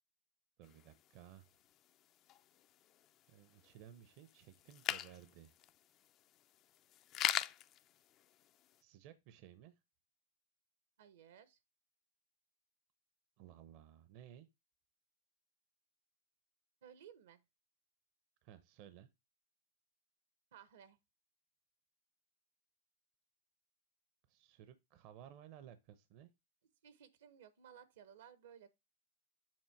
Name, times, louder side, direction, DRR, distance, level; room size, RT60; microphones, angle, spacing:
sound 1, 0.6-8.8, left 12 dB, 35° left, 0.4 m, -44 dB
voice 1, 0.6-1.5 3.3-5.5 8.8-9.7 13.4-14.5 18.4-19.1 24.3-26.3, right 11 dB, 50° right, 0.7 m, -57 dB
voice 2, 11.0-11.6 16.8-17.4 20.5-21.0 26.8-28.7, right 8 dB, 75° right, 1.0 m, -58 dB
7.3 x 2.8 x 5.9 m
hypercardioid pair, 115°, 0 cm